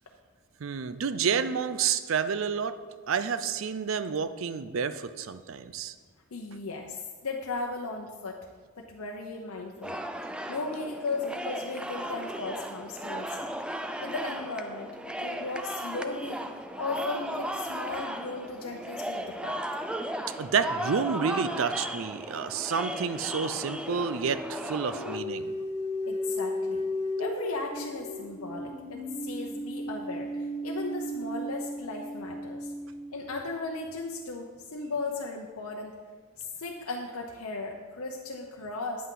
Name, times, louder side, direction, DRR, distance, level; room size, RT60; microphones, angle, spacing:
voice 1, 0.6-2.8 3.1-5.9 20.3-25.5, right 6 dB, 65° right, 12 dB, 0.5 m, -29 dB
voice 2, 6.3-8.4 8.8-10.0 10.5-13.5 14.0-16.4 16.8-19.6 26.1-26.9 27.2-32.7 33.1-35.9 36.4-39.1, left 3 dB, 90° left, 0 dB, 0.8 m, -36 dB
sound 1, 9.8-25.2, right 1 dB, 5° right, 0.4 m, -36 dB
sound 2, 20.3-20.4 22.2-33.3, left 1 dB, 40° left, 1.7 m, -36 dB
9.6 x 8.2 x 3.8 m, 1.5 s
head